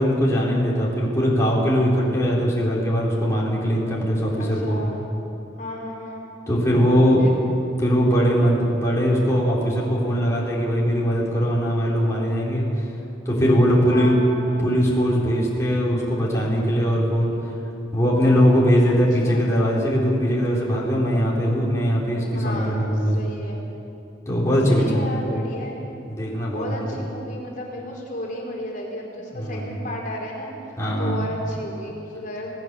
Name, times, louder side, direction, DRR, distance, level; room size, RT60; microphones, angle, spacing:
voice 1, 0.0-4.8 6.5-7.2 7.8-12.6 13.3-14.1 14.6-17.3 17.9-23.2 24.3-24.8 26.1-26.8 29.3-29.7 30.8-31.1, equal, 15° left, -5 dB, 4.0 m, -20 dB
voice 2, 4.4-5.0 5.6-6.2 7.2-7.3 13.9-14.7 19.1-19.5 22.3-23.7 24.7-26.0 26.5-32.5, left 1 dB, 45° left, -1 dB, 4.1 m, -33 dB
26.5 x 17.5 x 6.9 m, 2.8 s
head